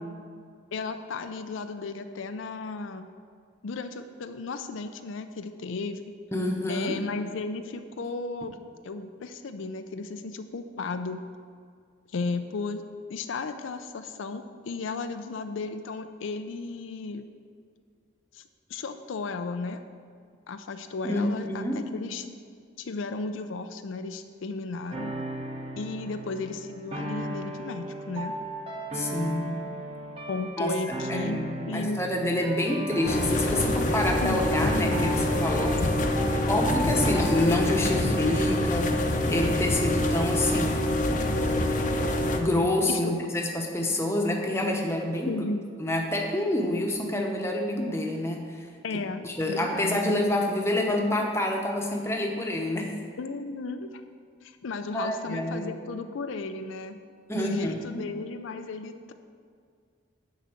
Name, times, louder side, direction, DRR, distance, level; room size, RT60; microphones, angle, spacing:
voice 1, 0.7-3.1 3.6-6.0 6.7-8.6 8.8-11.2 12.1-12.8 13.1-17.2 18.3-18.4 18.7-19.8 20.5-22.3 22.8-25.1 25.8-28.3 30.3-32.0 34.2-34.4 42.9-43.3 45.3-45.7 48.8-49.2 49.5-50.2 53.2-54.0 54.4-57.0 57.3-59.1, left 3 dB, 80° left, 8 dB, 0.5 m, -34 dB
voice 2, 6.3-7.0 21.0-21.8 28.9-29.6 30.6-30.7 31.1-35.8 36.5-40.9 42.4-45.4 45.8-48.7 49.2-52.9 54.9-55.8 57.3-58.0, left 1 dB, 15° left, 1 dB, 0.9 m, -27 dB
sound 1, 24.9-37.5, right 1 dB, 30° right, 0.9 m, -36 dB
sound 2, 33.0-42.4, left 1 dB, 40° left, 0.7 m, -26 dB
10.5 x 4.0 x 7.6 m, 2.1 s
head